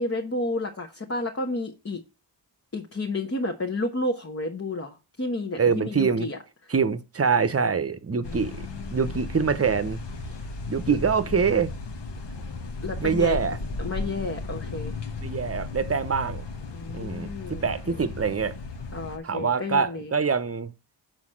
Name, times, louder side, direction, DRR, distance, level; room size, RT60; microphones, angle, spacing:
voice 1, 0.0-2.0 2.7-6.4 8.2-9.0 10.9-11.0 12.8-13.4 13.8-14.9 16.7-18.0 18.9-20.1, left 2 dB, 30° left, 1.2 m, -31 dB
voice 2, 5.6-6.3 6.7-10.0 10.7-11.7 13.0-13.6 15.2-16.5 16.9-18.6 19.2-20.7, right 5 dB, 35° right, 0.8 m, -25 dB
sound 1, 8.2-19.2, left 3 dB, 70° left, 1.2 m, -35 dB
6.5 x 4.1 x 6.3 m
cardioid pair, 55°, 43 cm